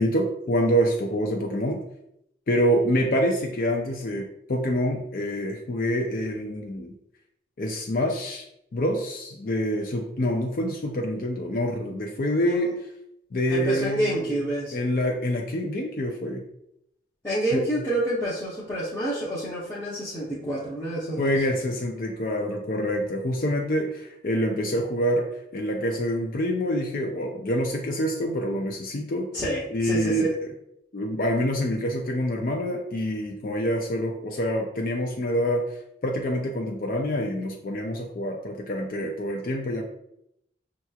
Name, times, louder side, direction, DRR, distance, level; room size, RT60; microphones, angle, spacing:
voice 1, 0.0-1.8 2.5-6.9 7.6-8.4 8.7-12.7 13.3-14.1 14.7-16.4 17.5-17.6 21.2-25.3 25.5-29.3 29.7-30.4 30.9-35.6 36.0-39.8, equal, 50° left, 2 dB, 0.4 m, -26 dB
voice 2, 12.4-12.7 13.5-14.8 17.2-21.3 29.3-30.3, right 1 dB, 15° left, -9 dB, 0.7 m, -28 dB
5.6 x 2.9 x 2.3 m, 0.79 s
head